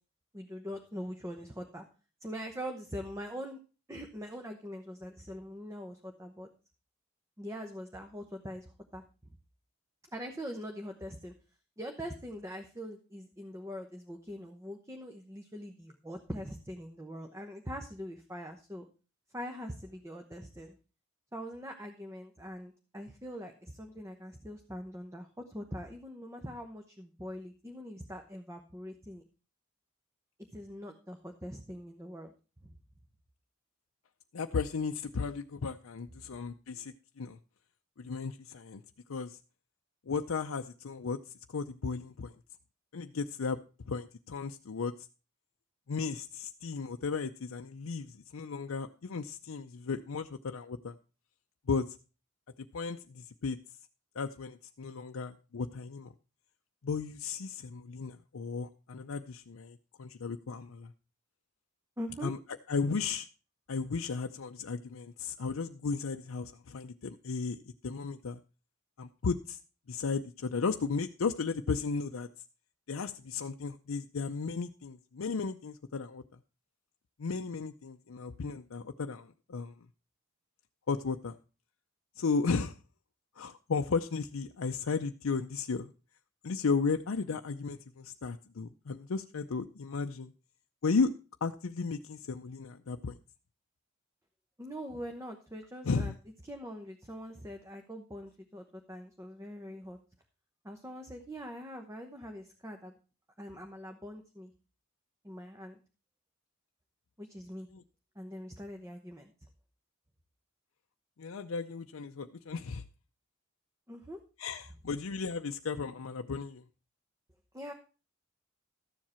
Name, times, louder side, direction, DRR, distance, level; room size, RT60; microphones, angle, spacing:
voice 1, 0.3-1.9 2.2-3.6 3.9-6.5 7.4-9.3 10.1-11.3 11.8-18.8 19.3-20.8 21.3-29.2 30.5-32.3 32.6-32.7 62.0-62.3 94.6-96.1 96.4-100.0 100.6-102.9 103.4-104.5 105.2-105.8 107.2-107.7 108.1-109.3 113.9-114.2 117.5-117.7, equal, 15° right, 4 dB, 0.9 m, -43 dB
voice 2, 34.3-37.4 38.0-38.8 39.1-39.4 40.1-41.2 41.5-42.3 42.9-43.6 43.9-44.9 45.9-50.9 51.7-52.0 52.7-53.6 54.2-56.1 56.8-60.9 62.2-62.4 62.7-63.3 63.7-68.4 69.0-69.6 69.9-72.3 72.9-76.2 77.2-79.7 80.9-81.4 82.2-82.8 83.4-85.9 86.4-90.3 90.8-91.1 91.4-93.1 95.8-96.1 107.7-107.8 111.2-112.8 114.4-116.6, left 4 dB, 85° left, 5 dB, 0.6 m, -35 dB
13.5 x 7.4 x 4.3 m, 0.34 s
head